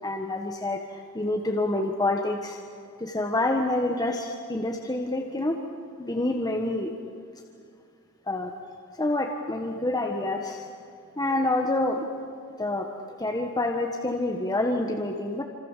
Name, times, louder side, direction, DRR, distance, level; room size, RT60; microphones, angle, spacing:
voice 1, 0.0-2.6 3.0-5.6 6.0-6.9 8.3-8.5 9.0-10.6 11.2-12.0 12.6-12.9 13.2-15.4, left 2 dB, 15° left, 2 dB, 1.5 m, -27 dB
28.0 x 26.5 x 7.5 m, 2.4 s
head